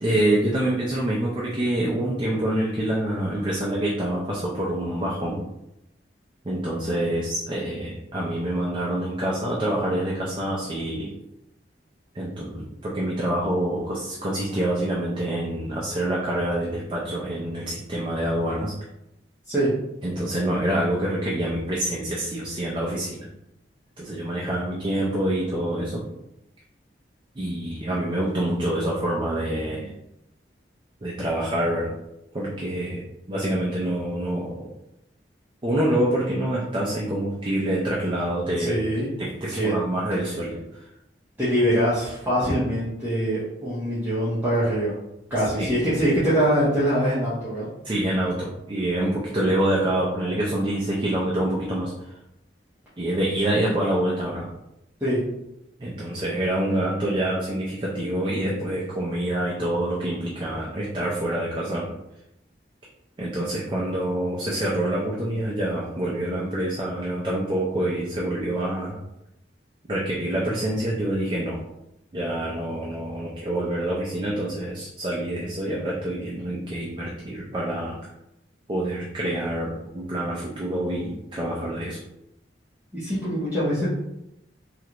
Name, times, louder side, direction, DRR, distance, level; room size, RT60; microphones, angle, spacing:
voice 1, 0.0-5.4 6.4-11.1 12.1-18.7 20.0-23.3 24.0-26.0 27.4-29.9 31.0-31.9 32.3-34.7 35.6-38.8 39.2-40.9 45.6-45.7 47.8-51.9 53.0-54.5 55.8-61.9 63.2-69.0 69.9-71.6 72.1-78.0 78.7-82.0, right 1 dB, 25° right, -4 dB, 0.4 m, -26 dB
voice 2, 38.6-39.1 39.5-39.7 41.4-44.9 45.3-47.7 55.0-55.2 82.9-83.9, equal, 10° right, -12 dB, 0.8 m, -23 dB
3.1 x 2.4 x 2.9 m, 0.85 s
head